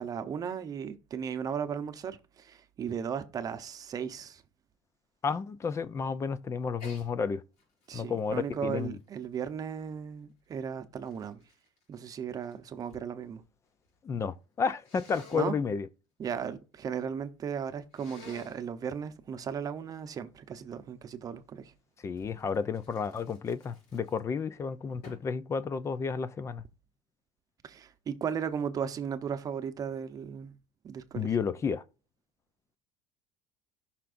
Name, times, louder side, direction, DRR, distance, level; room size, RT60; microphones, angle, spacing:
voice 1, 0.0-4.4 7.9-11.4 11.9-13.4 15.3-15.5 16.2-21.7 27.6-30.5 30.8-31.5, right 7 dB, 30° right, 0.9 m, -36 dB
voice 2, 5.2-7.4 7.9-9.0 14.0-15.9 22.0-26.6 31.1-31.8, left 5 dB, 25° left, 0.6 m, -31 dB
Sneeze, 6.8-7.1 7.6-9.9 10.6-13.1 13.3-14.0 14.8-15.5 17.9-18.6 22.2-24.4 25.0-25.4, left 3 dB, 65° left, 5.8 m, -54 dB
17.5 x 5.9 x 2.6 m
cardioid pair, 145°, 12 cm